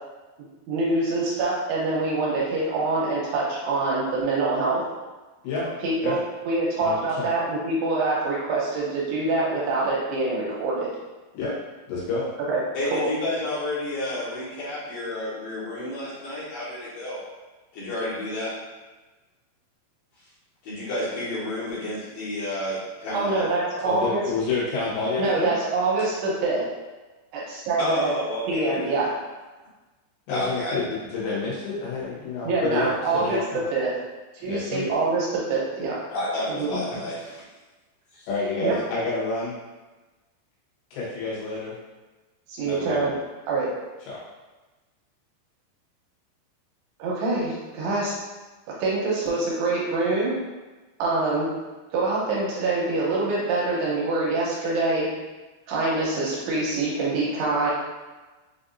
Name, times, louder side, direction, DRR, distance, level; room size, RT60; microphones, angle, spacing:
voice 1, 0.7-4.8 5.8-6.2 6.5-10.9 12.5-12.6 12.9-13.1 23.1-24.2 25.2-26.6 27.3-28.1 28.5-29.1 32.4-33.9 34.3-36.0 36.6-36.8 38.6-38.8 42.5-43.1 43.5-43.7 47.0-48.1 48.8-50.4 51.0-51.5 51.9-55.1 55.7-57.7, right 3 dB, 80° right, -5 dB, 2.8 m, -25 dB
voice 2, 6.8-7.3 11.3-11.5 11.9-12.3 23.8-25.5 30.3-33.6 34.5-34.9 38.3-39.5 40.9-41.8 42.7-43.1 44.1-44.2, left 3 dB, 80° left, -7 dB, 3.4 m, -29 dB
voice 3, 12.7-17.2 17.7-18.5 20.6-23.4 27.8-28.9 30.3-30.8 36.1-37.4 38.1-38.3, left 1 dB, 65° left, -10 dB, 2.6 m, -30 dB
6.8 x 2.6 x 2.6 m, 1.2 s
omnidirectional pair, 5.1 m